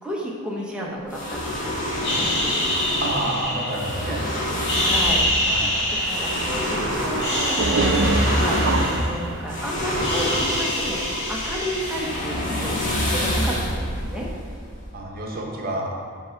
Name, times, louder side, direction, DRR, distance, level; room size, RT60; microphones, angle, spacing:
voice 1, 0.0-1.8 2.1-2.8 4.8-5.3 5.9-12.8 13.1-14.3, equal, 5° right, -4 dB, 1.0 m, -32 dB
sound 1, 1.1-15.0, equal, 40° left, 1.4 m, -28 dB
sound 2, 2.0-4.2 4.6-6.8 7.1-9.5 9.8-12.6, left 1 dB, 55° left, 1.5 m, -26 dB
sound 3, 2.3-10.0, right 3 dB, 60° right, 0.5 m, -28 dB
voice 2, 3.0-4.2 5.4-5.7 14.9-15.9, right 1 dB, 45° right, -1 dB, 1.1 m, -28 dB
6.2 x 5.6 x 4.5 m, 2.1 s
head